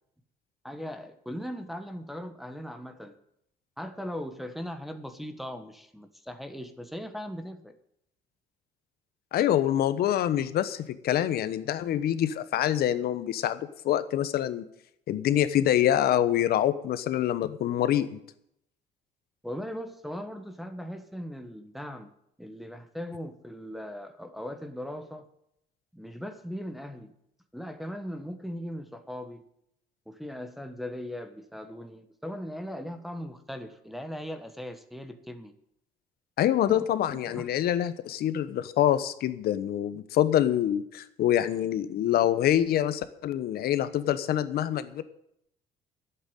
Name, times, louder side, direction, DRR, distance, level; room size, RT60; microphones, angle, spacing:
voice 1, 0.6-3.1 3.8-7.7 19.4-22.1 22.4-25.3 25.9-27.1 27.5-29.4 30.1-35.5 36.7-36.9 37.3-37.5, equal, ahead, 6 dB, 1.3 m, -39 dB
voice 2, 9.3-14.6 15.1-18.2 36.4-45.0, left 11 dB, 65° left, 13 dB, 1.1 m, -26 dB
11.5 x 8.1 x 9.0 m, 0.75 s
cardioid pair, 110°, 17 cm